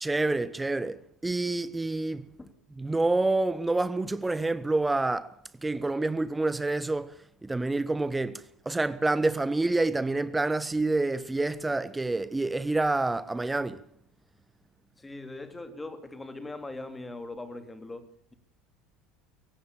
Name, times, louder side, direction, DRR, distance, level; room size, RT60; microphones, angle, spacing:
voice 1, 0.0-2.3 2.8-5.3 5.6-7.2 7.4-13.8, right 2 dB, 10° right, 1.3 m, -28 dB
voice 2, 15.0-18.3, left 2 dB, 10° left, 3.1 m, -41 dB
24.0 x 17.5 x 7.0 m
figure-of-eight pair, 70°, 0 cm